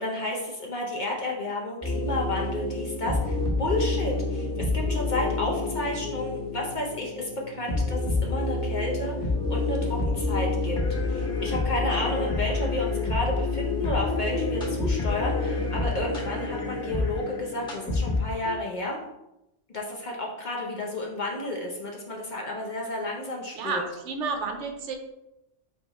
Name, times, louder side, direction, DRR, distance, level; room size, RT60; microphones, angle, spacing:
voice 1, 0.0-10.8 11.1-19.0 19.7-23.9, left 1 dB, 45° left, -1 dB, 0.8 m, -31 dB
sound 1, 1.8-18.6, left 3 dB, 5° left, 1.1 m, -28 dB
voice 2, 23.5-25.0, right 4 dB, 75° right, 5 dB, 0.9 m, -31 dB
3.6 x 3.4 x 4.1 m, 0.90 s
omnidirectional pair, 1.3 m